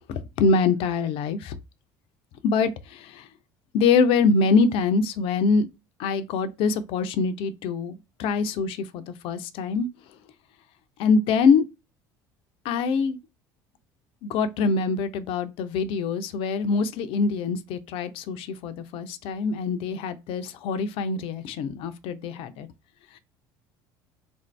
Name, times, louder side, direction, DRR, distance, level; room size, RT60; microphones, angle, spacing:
voice 1, 0.1-1.5 2.4-3.3 3.7-5.7 6.0-9.9 11.0-11.6 12.6-13.2 14.2-22.7, left 4 dB, 60° left, 0.5 m, -24 dB
3.7 x 2.6 x 3.1 m
hypercardioid pair, 70°, 10 cm